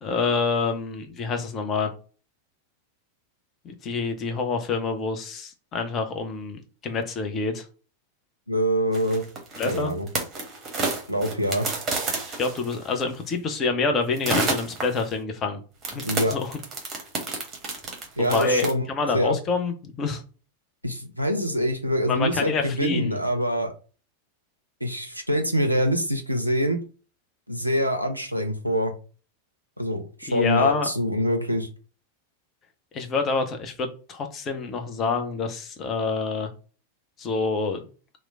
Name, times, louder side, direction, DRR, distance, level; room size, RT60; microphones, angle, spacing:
voice 1, 0.0-1.9 3.6-7.6 9.6-9.9 12.4-15.6 15.9-16.0 16.3-16.6 18.2-20.2 22.1-23.2 30.3-30.9 32.9-36.5 37.2-37.8, left 4 dB, 30° left, 5 dB, 0.5 m, -27 dB
voice 2, 8.5-9.3 9.6-10.1 11.1-11.7 16.0-16.4 18.2-18.8 19.1-19.4 20.8-23.7 24.8-26.8 27.5-28.9 29.8-31.7, equal, 90° right, 5 dB, 0.4 m, -25 dB
sound 1, 8.9-13.0 14.2-15.1 15.8-18.7, right 3 dB, 25° right, 0.8 m, -29 dB
2.9 x 2.0 x 2.4 m, 0.38 s
figure-of-eight pair, 90°, 0 cm